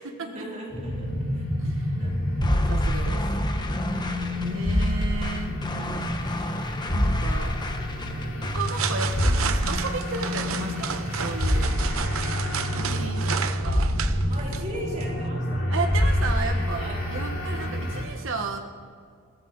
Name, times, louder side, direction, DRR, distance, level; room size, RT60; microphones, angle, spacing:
voice 1, 0.2-1.4 2.0-2.1 2.9-3.0 4.0-4.6 12.9-13.3 14.3-15.8 16.7-17.0, right 1 dB, 35° right, -4 dB, 4.4 m, -39 dB
sound 1, 0.7-18.0, equal, 65° left, 5.3 m, -27 dB
voice 2, 1.6-2.0 2.7-3.2 4.4-5.5 6.9-7.6 8.5-11.7 12.7-13.9 15.7-18.6, right 3 dB, 65° right, 3 dB, 1.2 m, -33 dB
sound 2, 2.4-8.7, left 1 dB, 20° left, 1.1 m, -34 dB
sound 3, 8.4-15.3, right 7 dB, 80° right, 0.9 m, -33 dB
22.0 x 16.0 x 4.0 m, 2.2 s
head